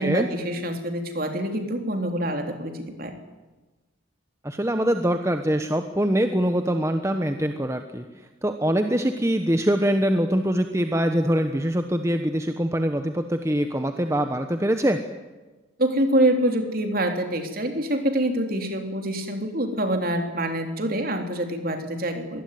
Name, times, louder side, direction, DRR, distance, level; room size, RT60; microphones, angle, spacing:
voice 1, 0.0-3.2 15.8-22.4, right 1 dB, 45° right, 5 dB, 3.7 m, -25 dB
voice 2, 4.4-8.0 8.4-15.0, equal, 15° right, 7 dB, 1.1 m, -23 dB
24.5 x 20.0 x 9.5 m, 1.2 s
head